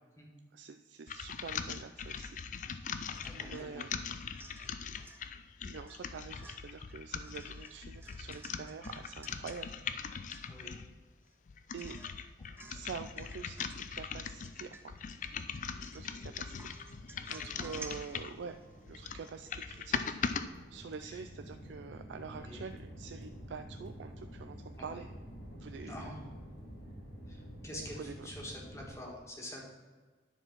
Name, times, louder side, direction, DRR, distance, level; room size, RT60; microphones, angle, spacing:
voice 1, 0.5-2.4 3.3-3.9 5.7-10.2 11.7-12.0 12.7-14.9 15.9-17.0 17.3-18.6 18.9-20.2 20.7-25.1 25.6-26.1 27.7-28.3, right 5 dB, 80° right, 7 dB, 0.4 m, -46 dB
sound 1, 1.1-10.9 11.5-18.4 18.9-20.4, left 6 dB, 45° left, 0.4 m, -41 dB
Domestic sounds home sounds / Chink clink / Drip, 3.1-3.7 4.1-5.2 5.9-6.1 6.4-9.6 10.0-10.1 10.3-10.8 11.2-11.3 11.8-12.2 12.6-12.9 13.2-13.9 14.4-15.2 15.6-16.2 16.6-19.9 20.1-20.2, right 3 dB, 10° right, 0.7 m, -54 dB
voice 2, 3.2-3.8 10.5-10.7 17.6-17.8 21.0-21.2 22.3-22.6 24.8-25.0 25.8-26.2 27.3-29.6, left 1 dB, 15° left, -2 dB, 1.6 m, -46 dB
sound 2, 12.4-28.9, equal, 65° left, 1.9 m, -51 dB
10.0 x 4.6 x 5.9 m, 1.4 s
head